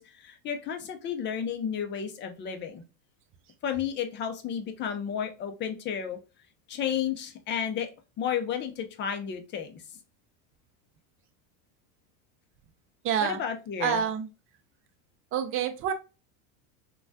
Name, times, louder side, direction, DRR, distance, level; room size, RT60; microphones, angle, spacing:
voice 1, 0.0-2.8 3.6-6.2 6.7-7.9 8.2-9.8 13.2-14.0, left 8 dB, 25° left, 6 dB, 0.5 m, -32 dB
voice 2, 13.0-13.4 13.8-14.3 15.3-15.9, right 8 dB, 30° right, 8 dB, 0.4 m, -27 dB
3.2 x 2.3 x 2.6 m, 0.30 s
supercardioid pair, 115°, 43 cm